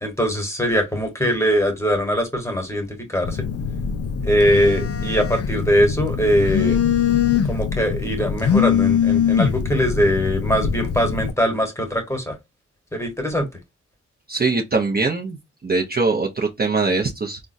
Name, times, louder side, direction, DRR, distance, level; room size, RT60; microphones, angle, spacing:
voice 1, 0.0-3.4 4.2-6.8 7.5-12.4 12.9-13.5, equal, 10° left, 1.2 m, -21 dB
Telephone, 3.2-11.3, left 7 dB, 55° left, 0.5 m, -22 dB
voice 2, 14.3-17.4, right 3 dB, 35° right, 0.6 m, -22 dB
3.5 x 2.1 x 2.6 m
cardioid pair, 55°, 29 cm